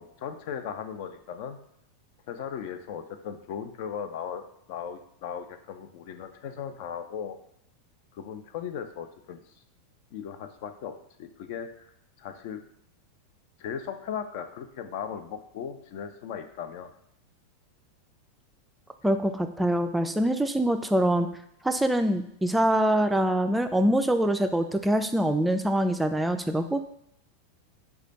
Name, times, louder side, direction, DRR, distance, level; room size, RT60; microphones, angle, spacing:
voice 1, 0.0-1.6 2.3-7.4 8.1-9.4 10.1-11.9 12.2-12.6 13.6-16.9, left 8 dB, 55° left, 8 dB, 0.4 m, -37 dB
voice 2, 19.0-21.3 21.6-26.8, right 1 dB, 5° right, 7 dB, 0.3 m, -24 dB
4.9 x 2.2 x 4.0 m, 0.74 s
figure-of-eight pair, 90°, 0 cm